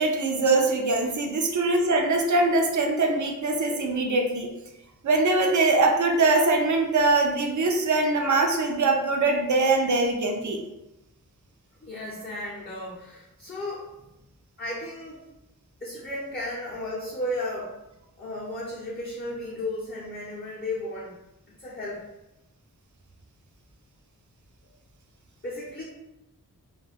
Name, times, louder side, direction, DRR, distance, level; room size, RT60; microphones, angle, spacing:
voice 1, 0.0-4.5 5.0-10.6, right 3 dB, 55° right, 2 dB, 0.5 m, -22 dB
voice 2, 11.8-13.9 14.6-15.2 15.8-17.7 18.2-21.1 21.5-22.0 25.4-25.8, left 1 dB, 25° left, -7 dB, 0.6 m, -34 dB
2.3 x 2.2 x 3.3 m, 0.92 s
wide cardioid pair, 85°, 36 cm